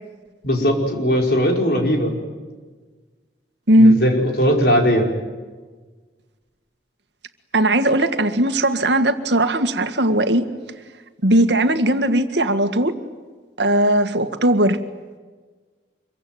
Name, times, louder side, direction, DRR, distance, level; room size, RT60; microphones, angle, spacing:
voice 1, 0.4-2.2 3.7-5.1, equal, 60° left, 2 dB, 5.2 m, -19 dB
voice 2, 3.7-4.0 7.5-10.4 11.2-12.9 13.6-14.8, right 1 dB, 75° right, 8 dB, 1.9 m, -17 dB
26.5 x 23.5 x 9.4 m, 1.4 s
head